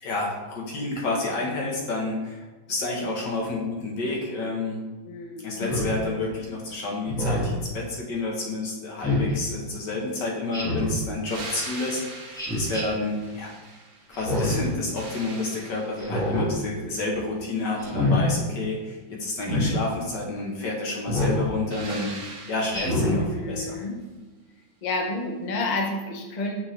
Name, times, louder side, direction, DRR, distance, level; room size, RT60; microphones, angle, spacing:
voice 1, 0.0-4.8 5.4-13.5 14.1-23.8, left 2 dB, 65° left, -2 dB, 1.8 m, -30 dB
voice 2, 5.0-5.7 23.1-24.0 24.8-26.6, left 2 dB, 50° left, 1 dB, 0.5 m, -30 dB
Speech synthesizer, 5.6-5.9 7.1-7.6 9.0-9.3 10.5-11.0 12.3-12.8 14.1-14.7 16.0-16.5 17.8-18.2 19.4-19.7 21.1-21.4 22.7-23.2, left 1 dB, ahead, 1.2 m, -25 dB
sound 1, 11.3-14.2 14.6-16.3 21.7-23.2 25.7-25.8, right 3 dB, 55° right, 1.4 m, -41 dB
8.7 x 4.5 x 3.2 m, 1.2 s
omnidirectional pair, 2.0 m